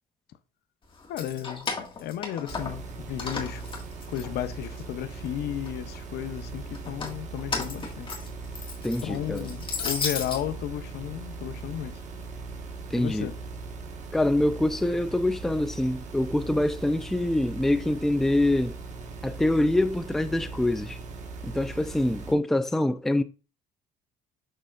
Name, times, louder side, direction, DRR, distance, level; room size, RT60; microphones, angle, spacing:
Keys jangling, 1.0-2.9 3.2-4.8 5.2-6.0 6.7-10.4, left 4 dB, 30° left, 1.8 m, -34 dB
voice 1, 1.1-3.6 4.1-8.2 9.0-12.0 12.9-13.4, left 12 dB, 75° left, 0.6 m, -34 dB
sound 1, 2.5-22.3, right 4 dB, 45° right, 1.4 m, -39 dB
voice 2, 8.8-9.5 12.9-13.3 14.1-18.7 19.2-21.0 21.4-23.2, left 1 dB, ahead, 0.4 m, -25 dB
6.6 x 6.1 x 2.4 m
cardioid pair, 110°, 17 cm